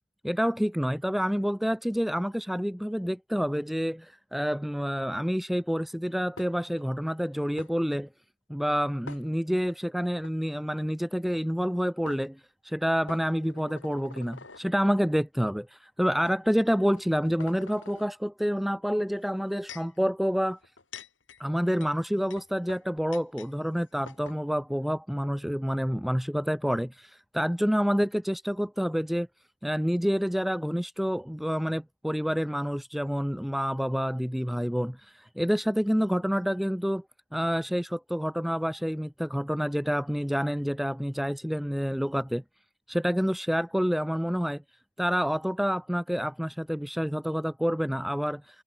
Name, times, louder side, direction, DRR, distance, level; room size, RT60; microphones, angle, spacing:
voice 1, 0.2-8.1 8.5-20.6 21.4-29.3 29.6-37.0 37.3-42.4 42.9-44.6 45.0-48.6, equal, ahead, 0.4 m, -28 dB
sound 1, 6.4-6.8 7.6-7.7 9.1-9.7 10.2-10.3 11.6-11.7 12.1-12.2 13.1-14.7 15.5-15.6 16.2-16.4 16.9-18.1 19.2-20.0 20.6-23.5 23.8-23.9 24.1-24.4, left 4 dB, 85° left, 4.1 m, -47 dB
head